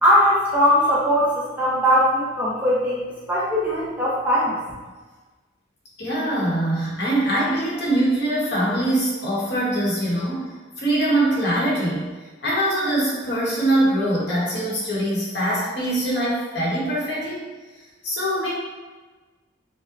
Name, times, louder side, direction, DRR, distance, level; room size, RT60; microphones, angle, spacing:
voice 1, 0.0-3.0 3.3-4.6, equal, 10° right, -8 dB, 0.8 m, -20 dB
voice 2, 6.0-12.1 12.4-17.4 18.0-18.5, right 1 dB, 60° left, -6 dB, 1.1 m, -23 dB
5.4 x 2.2 x 2.5 m, 1.3 s
head